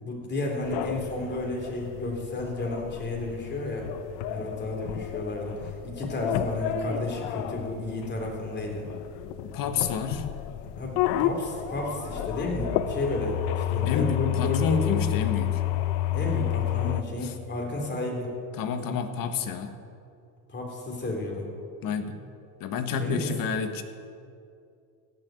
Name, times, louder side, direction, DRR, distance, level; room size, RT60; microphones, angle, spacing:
voice 1, 0.0-3.9 4.3-8.9 10.8-14.8 16.1-18.3 20.5-21.5 23.0-23.3, left 2 dB, 25° left, 0 dB, 3.8 m, -32 dB
sound 1, 0.6-17.0, left 12 dB, 70° left, 0.8 m, -31 dB
voice 2, 9.4-10.3 13.9-15.6 17.2-17.3 18.6-19.8 21.8-22.3 22.6-23.8, left 6 dB, 50° left, 8 dB, 1.4 m, -29 dB
16.0 x 6.3 x 9.4 m, 2.4 s
supercardioid pair, 115°, 43 cm